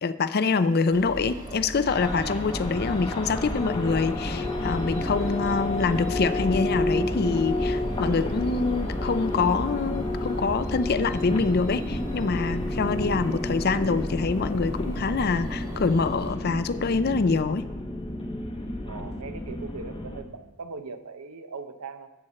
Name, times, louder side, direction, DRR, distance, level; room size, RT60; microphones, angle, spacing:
voice 1, 0.0-17.7, left 4 dB, 45° left, 13 dB, 0.4 m, -25 dB
sound 1, 0.9-16.3, right 1 dB, 35° right, 1.7 m, -39 dB
sound 2, 1.9-20.2, left 1 dB, 25° left, 0.8 m, -31 dB
voice 2, 18.8-22.1, right 4 dB, 85° right, 9 dB, 0.8 m, -39 dB
13.0 x 4.4 x 7.5 m, 1.1 s
head